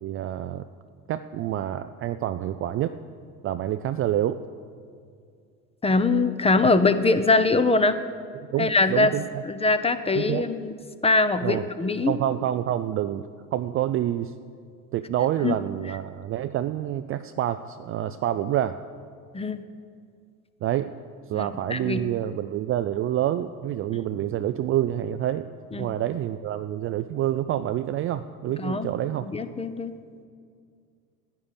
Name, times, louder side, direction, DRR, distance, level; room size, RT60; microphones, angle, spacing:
voice 1, 0.0-0.7 1.1-3.0 3.4-4.4 8.5-9.4 10.1-10.4 11.4-11.6 12.1-14.3 14.9-18.8 20.6-20.9 21.3-29.3, right 12 dB, 30° right, 10 dB, 0.4 m, -27 dB
voice 2, 5.8-8.0 8.6-9.1 9.5-10.7 11.0-12.1 15.4-15.6 19.3-19.6 21.3-22.0 25.7-25.9 28.6-28.9 29.2-29.9, left 3 dB, 15° left, 11 dB, 0.7 m, -22 dB
11.5 x 9.5 x 8.8 m, 2.2 s
figure-of-eight pair, 70°, 44 cm